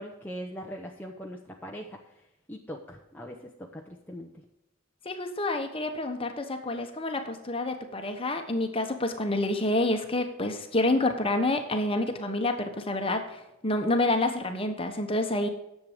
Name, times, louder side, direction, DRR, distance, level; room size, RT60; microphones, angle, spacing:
voice 1, 0.0-1.9 2.5-4.3, equal, 10° left, -1 dB, 0.8 m, -40 dB
voice 2, 5.0-15.5, left 2 dB, 25° left, 6 dB, 1.2 m, -28 dB
10.5 x 7.6 x 5.1 m, 0.90 s
head